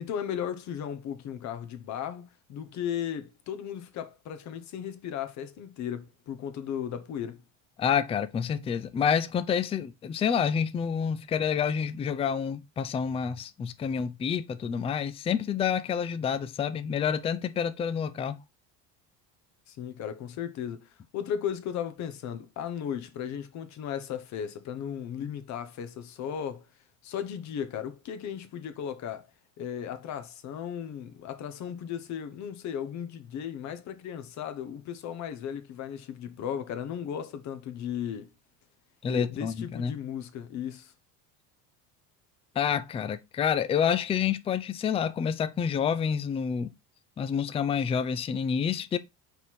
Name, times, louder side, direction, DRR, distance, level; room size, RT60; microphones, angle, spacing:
voice 1, 0.0-7.4 19.7-26.7 27.0-29.3 29.6-38.3 39.1-40.9, left 9 dB, 45° left, 1.1 m, -36 dB
voice 2, 7.8-18.4 39.0-39.9 42.6-46.7 47.2-49.0, left 7 dB, 15° left, 0.4 m, -28 dB
5.4 x 4.3 x 4.6 m
cardioid pair, 140°, 38 cm